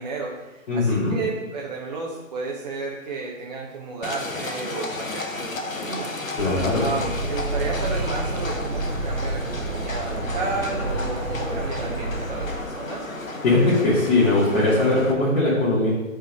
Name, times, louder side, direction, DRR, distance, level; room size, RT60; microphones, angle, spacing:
voice 1, 0.0-6.1 6.8-13.1, right 4 dB, 35° right, -3 dB, 0.7 m, -32 dB
voice 2, 0.7-1.2 6.4-6.8 13.4-15.9, left 2 dB, 45° left, -9 dB, 2.1 m, -20 dB
Livestock farm animals working animals, 4.0-15.1, left 2 dB, 80° left, 0.9 m, -33 dB
sound 1, 6.4-12.5, right 2 dB, 75° right, 1.0 m, -29 dB
5.2 x 3.7 x 5.6 m, 1.1 s
figure-of-eight pair, 135°, 39 cm